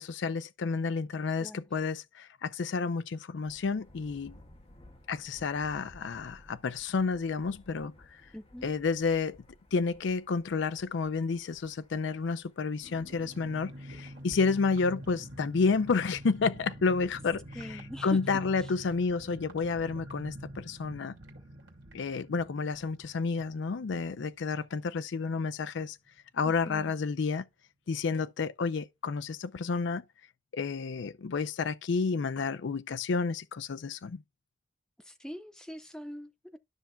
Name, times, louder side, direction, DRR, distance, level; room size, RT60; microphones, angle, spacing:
voice 1, 0.0-4.4 5.1-8.2 8.6-9.4 9.7-21.1 21.9-26.0 26.3-27.4 27.9-30.0 30.5-34.2, left 4 dB, 60° left, 0.4 m, -30 dB
Thunder, 3.4-16.0, left 1 dB, 30° left, 1.3 m, -58 dB
voice 2, 8.3-8.7 17.5-18.2 18.6-18.7 26.4-26.9 35.0-36.6, equal, 5° left, 0.5 m, -43 dB
sound 1, 12.8-25.2 25.4-25.5 25.8-26.1, equal, 55° right, 2.4 m, -47 dB
12.5 x 5.7 x 2.2 m
head